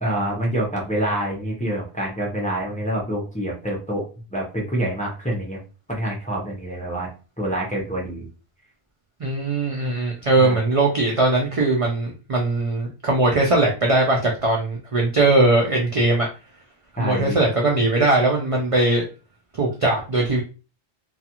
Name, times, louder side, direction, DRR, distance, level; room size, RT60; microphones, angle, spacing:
voice 1, 0.0-4.0 4.3-5.6 5.9-7.1 7.4-8.3 10.4-10.6 17.0-17.5, right 1 dB, 10° left, -3 dB, 0.6 m, -26 dB
voice 2, 9.2-16.3 17.0-19.0 19.5-20.4, right 2 dB, 55° right, -1 dB, 0.3 m, -20 dB
2.4 x 2.4 x 2.8 m, 0.33 s
omnidirectional pair, 1.2 m